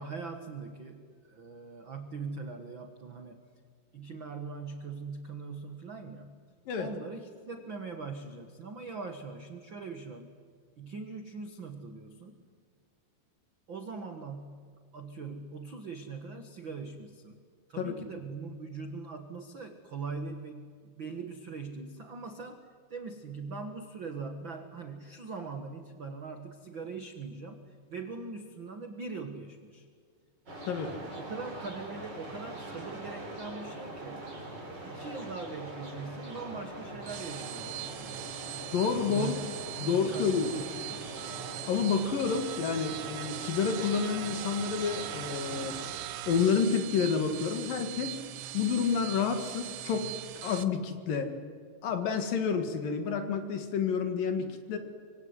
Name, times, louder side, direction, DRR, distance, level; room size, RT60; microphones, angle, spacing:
voice 1, 0.0-3.4 3.9-6.4 6.8-10.3 10.8-12.4 13.7-17.4 17.7-29.9 31.1-34.3 34.8-38.5 39.0-39.5 39.7-41.0, right 4 dB, 60° right, 6 dB, 1.2 m, -41 dB
sound 1, 30.5-45.9, right 1 dB, 25° right, 5.8 m, -43 dB
voice 2, 30.7-31.0 38.7-39.4 39.8-40.5 41.7-45.8 46.3-48.2 48.5-50.1 50.4-51.3 51.8-54.8, left 6 dB, 60° left, 7 dB, 3.4 m, -29 dB
sound 2, 36.9-50.6, right 14 dB, 85° right, 3.1 m, -41 dB
25.5 x 24.0 x 9.7 m, 2.1 s
omnidirectional pair, 4.8 m